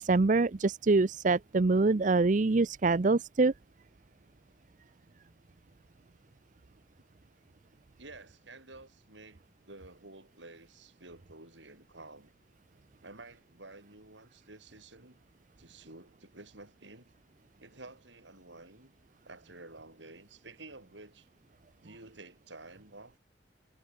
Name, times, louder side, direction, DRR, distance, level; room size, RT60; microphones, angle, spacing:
voice 1, 0.0-3.5, right 3 dB, 45° right, 0.6 m, -25 dB
voice 2, 8.0-12.3 13.0-15.2 15.6-17.1 17.6-18.9 19.2-21.3 21.8-23.2, right 2 dB, 85° right, 7.5 m, -51 dB
head